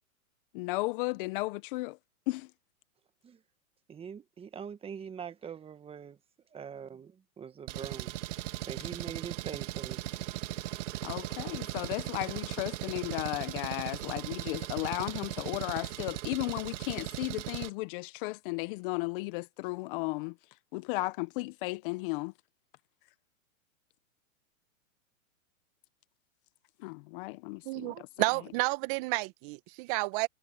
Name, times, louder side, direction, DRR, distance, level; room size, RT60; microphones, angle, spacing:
voice 1, 0.5-2.0 2.3-2.5 11.0-20.4 20.7-22.3 26.8-28.1, left 23 dB, 40° left, 1.1 m, -35 dB
voice 2, 3.9-6.2 6.5-10.0, right 7 dB, 15° right, 1.4 m, -43 dB
Engine, 7.7-17.7, right 15 dB, 55° right, 2.3 m, -38 dB
voice 3, 27.6-30.3, right 25 dB, 40° right, 1.5 m, -31 dB
hypercardioid pair, 135°, 42 cm